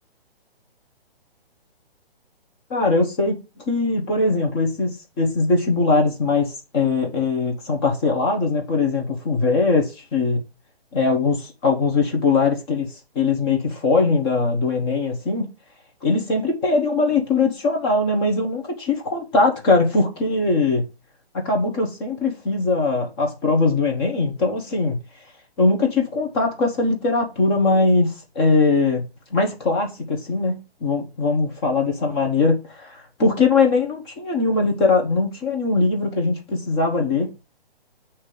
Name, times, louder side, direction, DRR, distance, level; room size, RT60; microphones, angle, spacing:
voice 1, 2.7-10.4 10.9-15.5 16.0-20.9 21.3-25.0 25.6-37.5, left 3 dB, 25° left, 1.1 m, -21 dB
8.3 x 3.0 x 5.0 m
hypercardioid pair, 155°, 31 cm